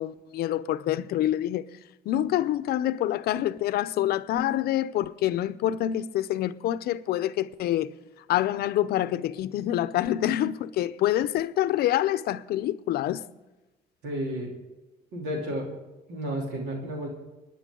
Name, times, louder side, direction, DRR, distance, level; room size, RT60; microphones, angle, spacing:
voice 1, 0.0-1.6 2.1-7.9 8.3-13.2, left 12 dB, 70° left, 0.6 m, -26 dB
voice 2, 14.0-14.5 15.1-15.7 16.1-17.1, equal, 85° right, 3.1 m, -32 dB
29.5 x 10.0 x 3.8 m
cardioid pair, 110°, 17 cm